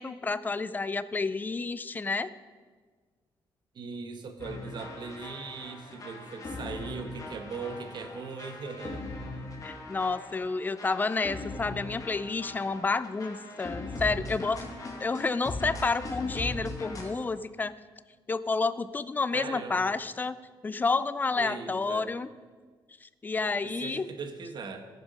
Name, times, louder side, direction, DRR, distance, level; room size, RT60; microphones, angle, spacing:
voice 1, 0.0-2.3 9.6-14.7 15.0-17.7 18.3-20.4 20.6-22.3 23.0-24.1, left 4 dB, 20° left, 15 dB, 0.4 m, -30 dB
voice 2, 3.7-9.0 19.3-19.8 21.4-22.1 23.6-24.9, right 4 dB, 55° right, 7 dB, 1.2 m, -39 dB
sound 1, 4.4-17.1, left 2 dB, 40° left, 1.9 m, -40 dB
15.0 x 7.1 x 5.2 m, 1.5 s
cardioid pair, 115°, 9 cm